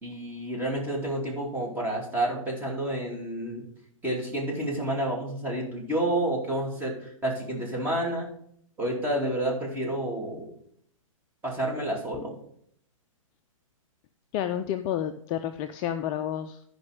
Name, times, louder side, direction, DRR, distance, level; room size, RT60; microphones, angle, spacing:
voice 1, 0.0-3.6 4.0-8.3 8.8-10.5 11.4-12.3, right 1 dB, 10° right, -2 dB, 2.6 m, -29 dB
voice 2, 14.3-16.6, left 10 dB, 25° left, 8 dB, 0.4 m, -30 dB
11.5 x 5.3 x 4.9 m, 0.67 s
hypercardioid pair, 125°, 18 cm